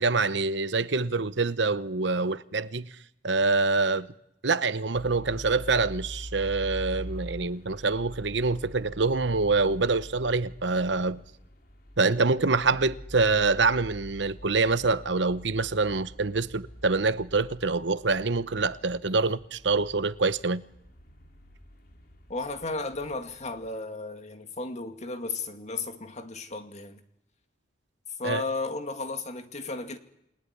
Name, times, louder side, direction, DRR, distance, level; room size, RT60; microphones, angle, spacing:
voice 1, 0.0-2.9 3.2-4.1 4.4-11.2 12.0-20.6 28.2-28.4, right 3 dB, 70° right, 1.0 m, -25 dB
sound 1, 4.9-23.7, equal, 55° left, 3.2 m, -45 dB
voice 2, 22.3-27.0 28.2-30.0, left 3 dB, 40° left, 2.2 m, -34 dB
28.5 x 19.5 x 9.9 m
head